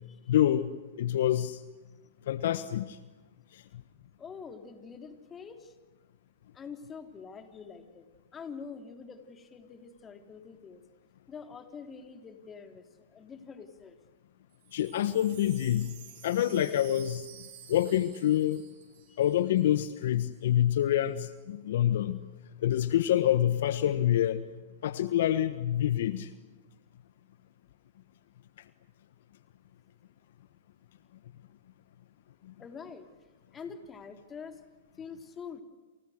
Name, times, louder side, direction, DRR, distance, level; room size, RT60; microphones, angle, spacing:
voice 1, 0.3-0.7 1.0-1.6 2.3-3.0 3.5-3.6 14.7-15.9 16.2-17.3 17.7-18.6 19.2-22.2 22.6-24.4 24.8-26.3, left 11 dB, 65° left, 13 dB, 1.3 m, -26 dB
voice 2, 4.2-5.7 6.5-8.0 8.3-10.8 11.3-12.8 13.1-14.0 19.1-19.2 32.6-33.1 33.5-34.6 35.0-35.6, left 6 dB, 20° left, 6 dB, 3.5 m, -45 dB
Wind chime, 14.5-19.8 20.0-20.1 20.3-20.8, right 11 dB, 55° right, 5.6 m, -52 dB
29.0 x 29.0 x 6.6 m, 1.2 s
hypercardioid pair, 115°, 0 cm